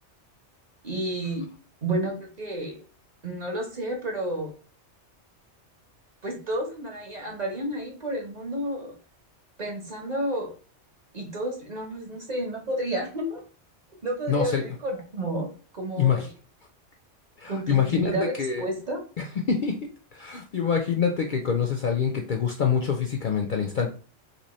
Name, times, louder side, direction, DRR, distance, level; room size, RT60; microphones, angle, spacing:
voice 1, 0.8-1.5 1.8-2.8 3.2-4.5 6.2-8.9 9.6-10.5 11.1-13.4 14.0-15.5 15.7-16.3 17.5-18.3 18.6-19.0, right 1 dB, 40° right, 1 dB, 0.9 m, -31 dB
voice 2, 14.3-14.6 16.0-16.3 17.4-18.1 18.4-18.6 19.2-19.8 20.1-23.9, left 7 dB, 55° left, 2 dB, 0.6 m, -25 dB
3.1 x 2.8 x 4.1 m, 0.38 s
omnidirectional pair, 1.2 m